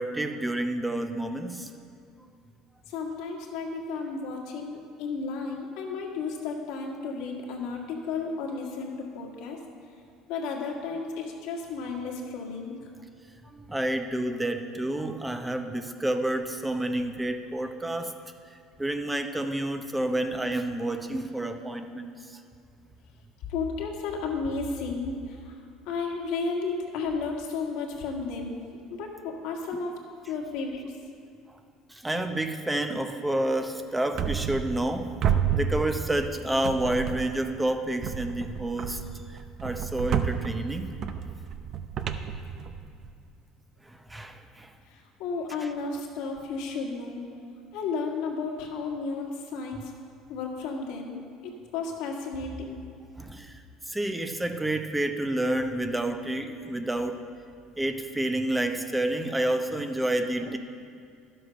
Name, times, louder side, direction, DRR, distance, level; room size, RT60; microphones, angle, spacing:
voice 1, 0.0-1.7 13.4-18.1 18.5-22.4 31.9-35.1 35.5-39.0 39.6-40.9 43.9-44.7 53.2-53.6 53.9-57.2 57.8-60.6, right 1 dB, 10° right, 6 dB, 0.7 m, -29 dB
voice 2, 2.9-9.6 10.3-12.9 23.5-25.6 25.9-28.6 28.9-30.0 30.3-30.9 44.9-47.2 47.7-49.9 50.3-52.8, left 4 dB, 75° left, 0 dB, 1.8 m, -33 dB
sound 1, 34.2-34.9 35.2-36.3 36.6-37.5 38.0-43.1, right 8 dB, 50° right, 0.6 m, -30 dB
11.5 x 7.8 x 5.3 m, 2.3 s
supercardioid pair, 105°, 0 cm